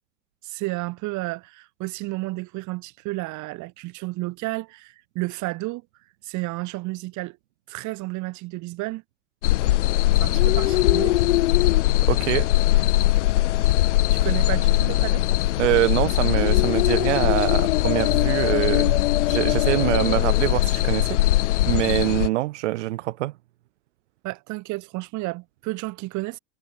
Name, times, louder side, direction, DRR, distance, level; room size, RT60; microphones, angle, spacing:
voice 1, 0.4-5.8 6.2-7.4 7.7-9.0 10.2-11.2 14.1-15.2 24.2-26.4, right 21 dB, 55° right, 3.9 m, -31 dB
sound 1, 9.4-22.3, left 16 dB, 90° left, 1.2 m, -20 dB
voice 2, 12.1-12.5 15.6-19.0 19.3-23.3, right 17 dB, 80° right, 2.7 m, -24 dB
supercardioid pair, 110°, 35 cm